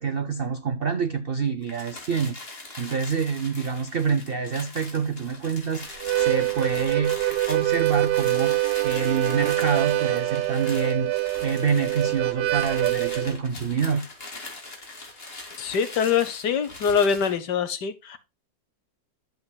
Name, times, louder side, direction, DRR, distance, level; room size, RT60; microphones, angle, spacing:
voice 1, 0.0-14.1, right 6 dB, 65° right, 0.5 m, -27 dB
sound 1, 1.6-17.4, left 2 dB, 35° left, 2.5 m, -41 dB
Harmonica, 5.9-13.3, right 18 dB, 80° right, 1.4 m, -25 dB
voice 2, 15.6-18.2, left 7 dB, 75° left, 1.6 m, -24 dB
10.5 x 7.8 x 2.3 m
omnidirectional pair, 1.9 m